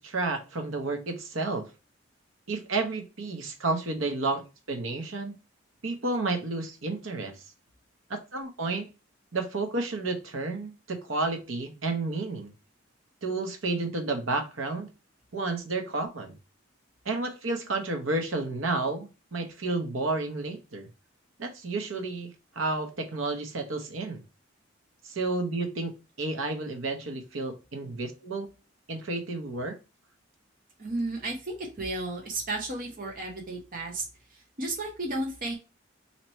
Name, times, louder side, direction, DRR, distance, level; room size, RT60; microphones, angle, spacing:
voice 1, 0.0-1.7 2.5-4.4 4.7-5.3 5.8-7.4 8.1-8.9 9.3-12.5 13.2-14.9 15.3-16.3 17.0-20.9 21.4-22.3 22.5-24.2 25.0-28.5 28.9-29.8, right 3 dB, 90° right, 4 dB, 0.9 m, -31 dB
voice 2, 30.8-34.0 34.3-35.5, right 2 dB, 45° right, 0 dB, 0.9 m, -33 dB
3.0 x 2.9 x 4.2 m, 0.30 s
head